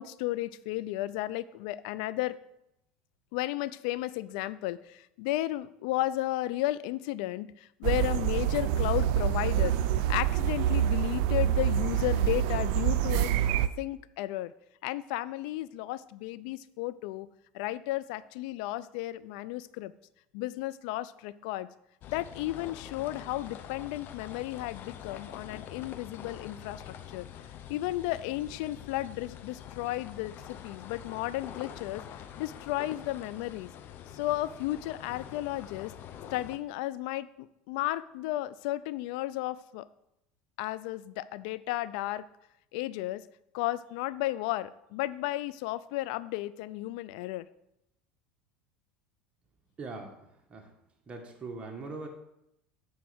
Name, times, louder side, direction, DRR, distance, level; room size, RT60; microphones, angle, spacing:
voice 1, 0.0-2.4 3.3-13.3 13.8-14.5 14.8-17.3 17.5-19.9 20.3-21.7 22.1-27.3 27.7-32.0 32.4-33.7 34.1-35.9 36.3-39.9 40.6-42.2 42.7-43.2 43.5-47.4, left 16 dB, 70° left, 16 dB, 0.4 m, -33 dB
sound 1, 7.8-13.7, right 11 dB, 70° right, 0.4 m, -26 dB
sound 2, 22.0-36.6, left 9 dB, 50° left, 0.7 m, -45 dB
voice 2, 49.8-50.2 50.5-50.7 51.1-52.1, right 3 dB, 25° right, 1 dB, 1.7 m, -40 dB
7.9 x 4.7 x 5.9 m, 0.82 s
hypercardioid pair, 95°, 5 cm